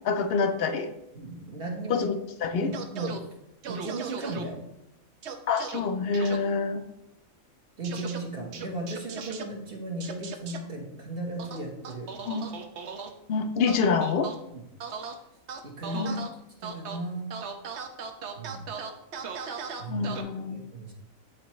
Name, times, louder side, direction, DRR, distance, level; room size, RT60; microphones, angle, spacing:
voice 1, 0.0-0.9 1.9-2.1 2.4-2.7 5.5-6.8 12.3-12.4 13.3-14.3 15.9-16.2 19.9-20.6, left 5 dB, 60° left, 9 dB, 0.7 m, -26 dB
voice 2, 1.1-2.1 2.5-3.1 3.7-4.6 7.8-12.1 14.5-14.6 15.6-16.2 16.6-17.3 18.4-18.7 19.8-20.1 20.4-20.9, right 2 dB, 45° right, 0 dB, 1.3 m, -36 dB
sound 1, 2.7-3.2 3.6-4.4 5.2-5.8 6.1-6.4 7.8-8.2 8.5-9.4 10.0-10.6 11.4-13.1 13.7-14.4 14.8-15.1 15.5-16.3 16.6-17.0 17.3-20.2, right 6 dB, 60° right, 0.9 m, -37 dB
9.4 x 4.3 x 3.1 m, 0.84 s
omnidirectional pair, 1.4 m